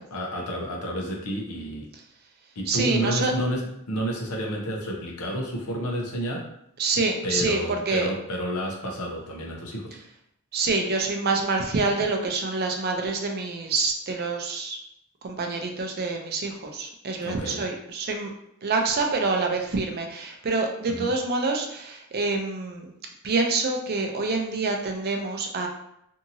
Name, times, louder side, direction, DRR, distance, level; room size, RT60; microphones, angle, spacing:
voice 1, 0.1-1.9 2.6-6.5 7.2-10.0 17.2-17.6 20.9-21.1, equal, 80° left, -1 dB, 0.7 m, -30 dB
voice 2, 2.7-3.3 6.8-7.6 7.9-8.1 10.5-14.8 15.2-18.3 18.6-22.9 23.2-25.7, right 3 dB, 45° right, 3 dB, 0.4 m, -26 dB
2.8 x 2.7 x 2.6 m, 0.75 s
head